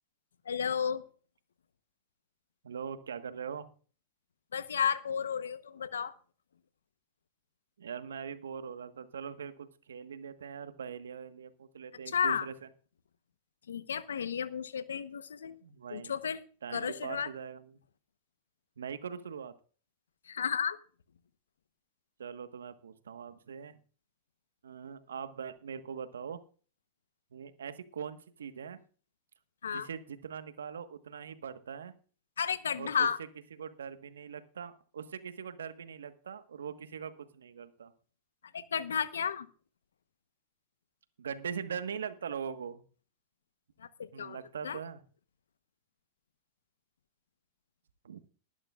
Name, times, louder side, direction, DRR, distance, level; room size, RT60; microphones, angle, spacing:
voice 1, 0.5-1.0 4.5-6.1 12.1-12.5 13.7-15.5 15.9-16.4 16.7-17.3 20.3-20.8 29.6-29.9 32.4-33.2 38.5-39.5 43.8-44.4 44.6-44.8, left 7 dB, 85° left, 14 dB, 1.0 m, -32 dB
voice 2, 2.6-3.7 7.8-12.5 15.6-16.1 16.6-17.8 18.8-19.5 22.2-23.8 24.6-26.4 27.3-28.8 29.7-31.9 32.8-33.1 33.6-37.9 41.2-42.8 44.1-45.0 48.0-48.2, right 7 dB, 80° right, 10 dB, 1.4 m, -41 dB
20.5 x 11.5 x 2.5 m, 0.39 s
hypercardioid pair, 100°, 0 cm